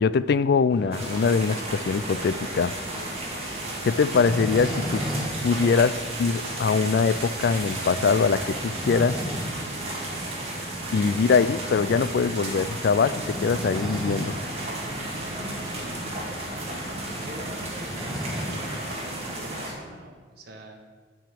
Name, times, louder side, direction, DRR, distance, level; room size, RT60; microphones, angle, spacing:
voice 1, 0.0-2.7 3.8-5.0 5.4-9.2 10.9-14.4, left 5 dB, 55° left, 16 dB, 0.3 m, -23 dB
sound 1, 0.7-18.0, equal, 30° left, 1.5 m, -45 dB
sound 2, 0.9-19.7, right 1 dB, 35° right, 1.8 m, -33 dB
sound 3, 3.1-5.4 5.7-5.8 6.2-6.3 6.8-6.9 8.4-9.6 10.0-10.1 11.7-11.9 13.1-14.4 14.7-14.8 15.1-15.2 15.9-16.0 16.2-18.8, equal, 5° right, 1.1 m, -34 dB
voice 2, 15.3-16.3 16.6-20.8, right 1 dB, 55° right, 0 dB, 1.4 m, -44 dB
9.0 x 4.9 x 7.5 m, 1.5 s
head